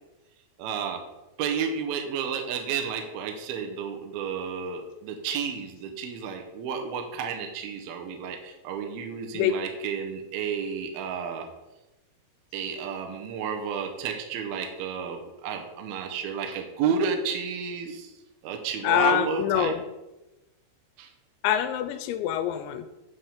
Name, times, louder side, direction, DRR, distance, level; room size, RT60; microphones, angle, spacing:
voice 1, 0.6-1.0 1.4-11.5 12.5-18.1 18.4-19.7 21.0-21.1, right 6 dB, 80° right, 3 dB, 2.3 m, -31 dB
voice 2, 18.8-19.8 21.4-22.9, left 10 dB, 90° left, 9 dB, 2.9 m, -25 dB
8.6 x 3.5 x 5.6 m, 1.0 s
omnidirectional pair, 5.2 m